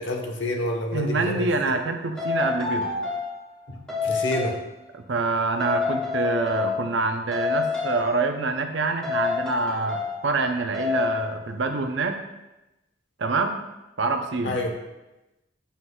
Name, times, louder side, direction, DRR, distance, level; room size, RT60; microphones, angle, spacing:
voice 1, 0.0-1.4 3.7-3.8 4.0-4.5 14.4-14.7, left 1 dB, 65° left, 2 dB, 1.0 m, -27 dB
voice 2, 0.9-2.9 4.9-12.2 13.2-13.6 14.0-14.6, right 3 dB, 65° right, 6 dB, 0.6 m, -26 dB
sound 1, 1.2-1.4 2.2-3.4 3.9-4.6 5.6-7.0 7.3-8.2 9.0-10.2 10.7-11.3, left 5 dB, 5° left, 1.5 m, -27 dB
7.9 x 5.6 x 2.3 m, 0.98 s
head